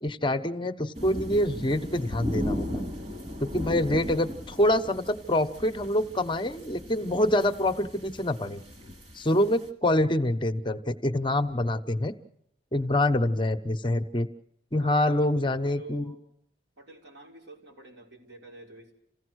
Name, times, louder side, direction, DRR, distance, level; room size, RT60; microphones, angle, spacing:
voice 1, 0.0-2.8 3.4-8.6 9.1-12.1 12.7-14.3 14.7-16.1, left 1 dB, 25° left, 8 dB, 1.0 m, -26 dB
sound 1, 0.9-9.7, left 1 dB, 40° right, 3.0 m, -37 dB
voice 2, 14.8-16.2 16.8-18.9, right 2 dB, 85° right, 0 dB, 5.9 m, -47 dB
28.0 x 17.0 x 6.4 m, 0.75 s
head